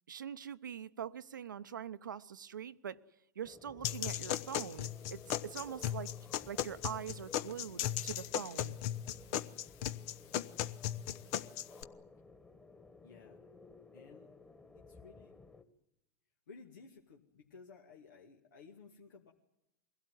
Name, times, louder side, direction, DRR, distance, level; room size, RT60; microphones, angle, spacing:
voice 1, 0.1-3.0 3.4-6.1 6.4-8.7, right 8 dB, 90° right, 0.9 m, -43 dB
sound 1, 3.4-15.6, left 3 dB, 15° left, 1.9 m, -56 dB
sound 2, 3.8-11.8, left 12 dB, 50° left, 0.9 m, -37 dB
voice 2, 13.0-13.4 13.9-14.3 14.7-15.4 16.5-19.3, left 4 dB, 80° left, 2.4 m, -56 dB
22.5 x 16.5 x 9.3 m
hypercardioid pair, 105°, 10 cm